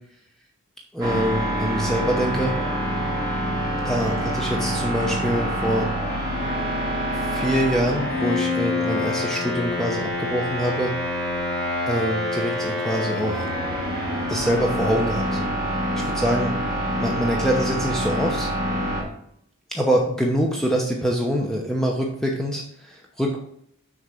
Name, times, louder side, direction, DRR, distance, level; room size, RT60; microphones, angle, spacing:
voice 1, 0.9-2.5 3.8-5.9 7.1-10.9 11.9-13.5 14.3-15.4 16.0-16.5 17.0-18.5 19.7-23.4, equal, ahead, -1 dB, 0.8 m, -24 dB
sound 1, 1.0-19.0, equal, 20° right, 3.0 m, -26 dB
6.5 x 3.9 x 6.2 m, 0.70 s
head